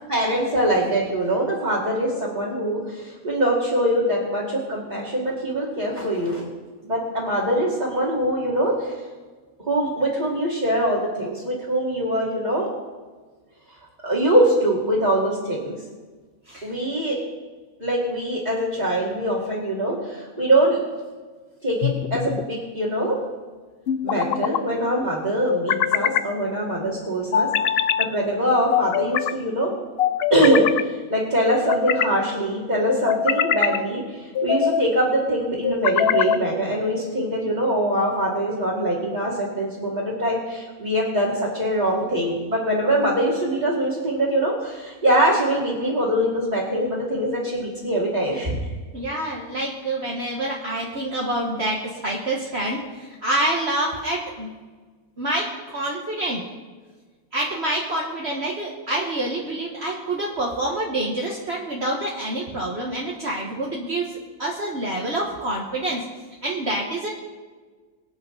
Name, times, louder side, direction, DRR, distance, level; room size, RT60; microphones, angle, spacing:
voice 1, 0.1-6.4 6.8-9.0 9.7-12.7 14.0-15.8 16.6-17.2 17.8-20.8 21.6-23.2 24.0-27.5 28.0-29.7 30.3-48.6, right 1 dB, 30° right, -6 dB, 2.4 m, -23 dB
sound 1, 21.8-22.5 23.9-24.6 25.5-26.3 27.3-28.1 28.7-29.3 30.0-30.8 31.5-32.1 32.9-33.8 34.4-34.9 35.6-36.4, left 8 dB, 70° left, 0.6 m, -23 dB
voice 2, 48.9-54.5 55.2-56.4 57.3-66.1 66.4-67.1, right 1 dB, 45° right, -3 dB, 1.6 m, -27 dB
24.0 x 8.7 x 3.9 m, 1.4 s
omnidirectional pair, 1.6 m